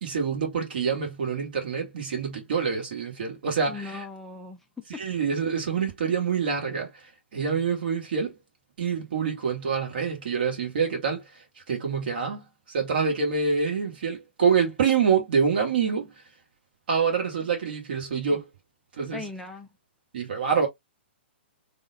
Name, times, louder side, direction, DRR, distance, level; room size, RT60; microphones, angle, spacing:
voice 1, 0.0-4.0 4.9-6.9 7.3-8.3 8.8-11.2 11.7-16.1 16.9-18.4 19.0-19.3 20.1-20.7, right 6 dB, 55° right, 1.5 m, -26 dB
voice 2, 3.7-4.6 19.1-19.7, left 3 dB, 5° left, 0.4 m, -38 dB
3.5 x 2.3 x 2.7 m
figure-of-eight pair, 115°, 6 cm